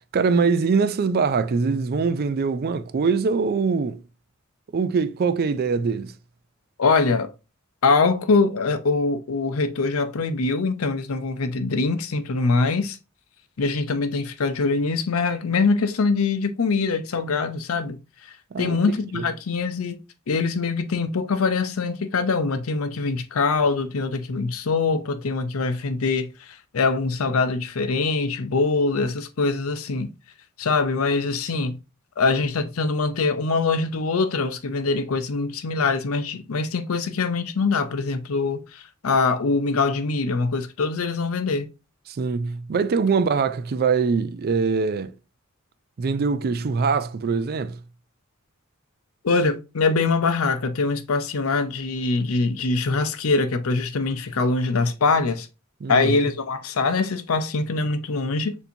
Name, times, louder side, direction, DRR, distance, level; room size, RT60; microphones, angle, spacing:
voice 1, 0.0-4.0 4.7-6.1 18.5-18.8 19.1-19.3 42.1-45.1 46.0-47.8 55.8-56.2, right 5 dB, 45° right, 0.4 m, -23 dB
voice 2, 6.8-7.3 7.8-13.0 13.6-18.0 18.6-20.0 20.3-30.1 30.6-31.7 32.2-41.7 49.2-55.5 55.9-58.6, left 4 dB, 80° left, 0.6 m, -23 dB
6.8 x 2.7 x 2.7 m
head